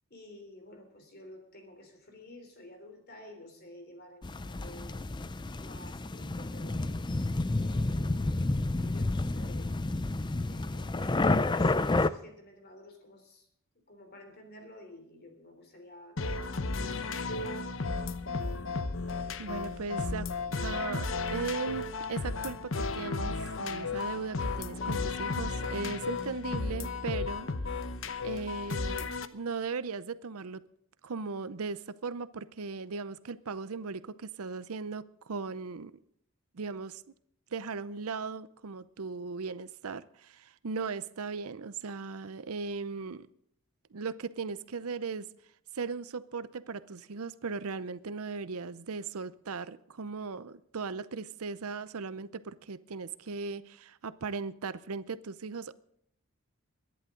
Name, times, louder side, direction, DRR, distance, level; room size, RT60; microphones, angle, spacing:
voice 1, 0.1-5.0 5.6-7.0 7.5-9.8 10.4-13.5 13.9-16.2 16.8-17.7, left 1 dB, 45° left, 5 dB, 3.4 m, -52 dB
sound 1, 4.2-12.1, left 2 dB, 20° left, 0.4 m, -30 dB
sound 2, 16.2-29.3, left 4 dB, 60° left, 0.9 m, -34 dB
voice 2, 19.4-20.3 20.6-27.5 28.2-30.6 31.0-35.9 36.5-37.0 37.5-43.3 43.9-45.3 45.7-55.7, right 4 dB, 80° right, 15 dB, 0.6 m, -38 dB
23.0 x 11.0 x 3.8 m, 0.72 s
head